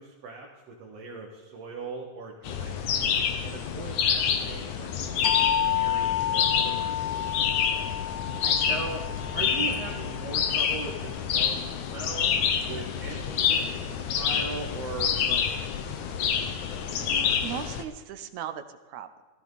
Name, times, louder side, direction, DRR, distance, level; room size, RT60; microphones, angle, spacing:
voice 1, 0.0-5.3 5.7-7.3 8.7-9.0 9.3-12.4 12.6-15.5, right 4 dB, 60° right, -1 dB, 2.7 m, -39 dB
sound 1, 2.4-17.8, left 7 dB, 75° left, 2.5 m, -28 dB
sound 2, 5.2-10.5, left 10 dB, 45° left, 1.6 m, -30 dB
voice 2, 8.4-8.7 16.4-16.7 17.0-19.1, right 10 dB, 75° right, 9 dB, 2.2 m, -39 dB
16.0 x 15.0 x 4.1 m, 1.3 s
omnidirectional pair, 3.5 m